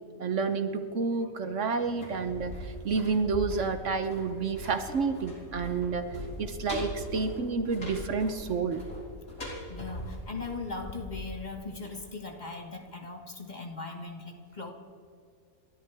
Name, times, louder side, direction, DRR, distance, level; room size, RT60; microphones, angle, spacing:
voice 1, 0.2-6.0 6.4-8.8, right 4 dB, 60° right, 9 dB, 1.2 m, -30 dB
sound 1, 1.8-12.6 12.9-13.0, equal, 80° left, 4.5 m, -41 dB
voice 2, 9.7-14.7, left 3 dB, 30° left, 3 dB, 1.6 m, -39 dB
29.5 x 13.0 x 3.5 m, 2.4 s
omnidirectional pair, 1.5 m